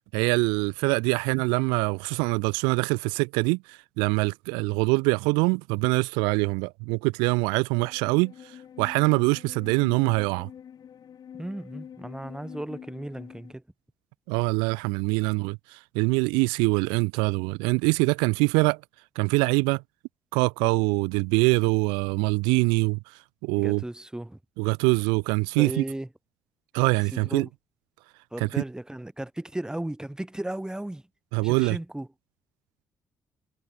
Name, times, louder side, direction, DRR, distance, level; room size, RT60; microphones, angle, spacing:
voice 1, 0.1-8.3 8.8-10.5 14.3-18.8 19.2-19.8 20.3-23.0 23.4-23.8 24.6-25.8 26.7-27.5 28.4-28.5 31.3-31.8, right 32 dB, 80° right, 0.6 m, -24 dB
sound 1, 7.7-13.5, left 8 dB, 60° left, 4.9 m, -46 dB
voice 2, 11.4-13.6 23.6-24.4 25.6-26.1 27.1-27.5 28.3-31.0 31.4-32.1, right 1 dB, 10° right, 2.1 m, -35 dB
hypercardioid pair, 45°, 8 cm